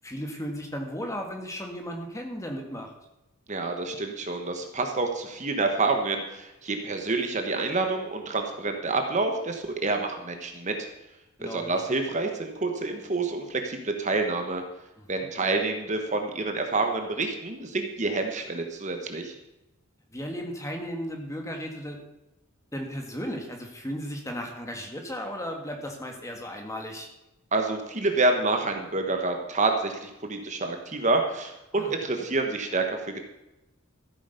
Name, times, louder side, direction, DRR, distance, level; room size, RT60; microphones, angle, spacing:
voice 1, 0.0-2.9 11.4-11.7 15.0-15.3 20.1-22.0 22.7-27.1 31.7-32.3, equal, 15° left, 2 dB, 1.9 m, -35 dB
voice 2, 3.5-10.8 11.4-14.6 15.1-19.3 27.5-33.2, right 3 dB, 35° right, 4 dB, 1.3 m, -28 dB
14.5 x 8.8 x 5.3 m, 0.94 s
head